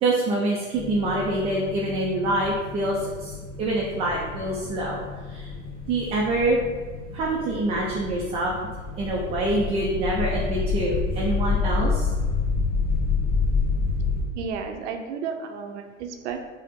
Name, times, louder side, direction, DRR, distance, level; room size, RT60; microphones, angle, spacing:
voice 1, 0.0-5.0 5.3-5.5 5.9-6.6 7.1-8.5 9.0-12.1, right 2 dB, 15° right, -3 dB, 0.3 m, -25 dB
sound 1, 0.7-14.2, left 4 dB, 40° left, 1.3 m, -29 dB
voice 2, 14.3-16.4, right 6 dB, 60° right, 4 dB, 0.6 m, -32 dB
4.8 x 2.1 x 3.5 m, 1.5 s
hypercardioid pair, 95°, 39 cm